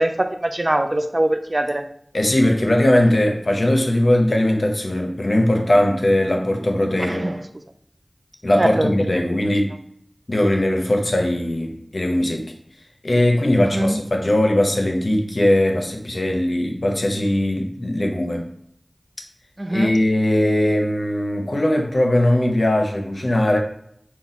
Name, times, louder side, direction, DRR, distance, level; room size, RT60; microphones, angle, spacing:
voice 1, 0.0-1.8 7.0-7.4 8.6-8.9 13.7-14.0 19.6-19.9, right 1 dB, 45° right, 7 dB, 0.4 m, -22 dB
voice 2, 2.1-7.3 8.4-9.7 10.3-12.5 13.0-18.4 19.7-23.6, left 1 dB, 70° left, 2 dB, 0.6 m, -19 dB
4.0 x 2.3 x 4.0 m, 0.69 s
wide cardioid pair, 50°, 0 cm